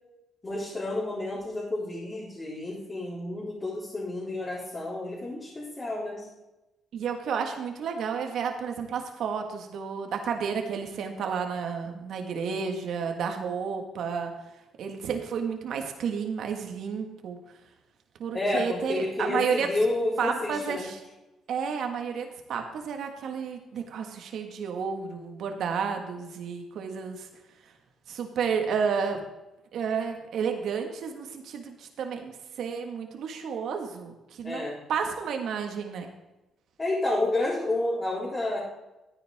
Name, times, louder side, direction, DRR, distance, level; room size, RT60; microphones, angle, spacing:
voice 1, 0.4-6.3 18.3-20.9 34.4-34.8 36.8-38.6, left 2 dB, 25° left, -6 dB, 4.0 m, -30 dB
voice 2, 6.9-14.3 14.8-17.4 18.2-19.7 20.2-21.0 21.5-27.3 28.1-29.2 29.7-32.3 32.6-36.1, right 6 dB, 70° right, 4 dB, 1.8 m, -31 dB
13.0 x 9.7 x 3.7 m, 1.0 s
cardioid pair, 90°, 0 cm